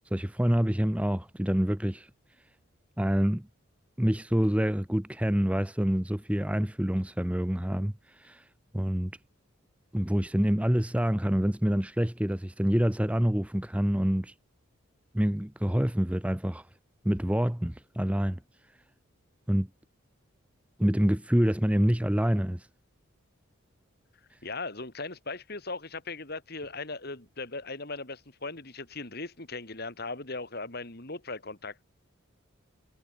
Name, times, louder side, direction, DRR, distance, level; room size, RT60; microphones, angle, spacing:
voice 1, 0.1-2.1 3.0-3.5 4.0-8.4 8.7-9.1 9.9-14.3 15.1-16.7 17.0-18.4 19.5-19.7 20.8-22.7, equal, 5° right, 0.6 m, -26 dB
voice 2, 24.4-31.8, left 3 dB, 45° left, 2.8 m, -38 dB
head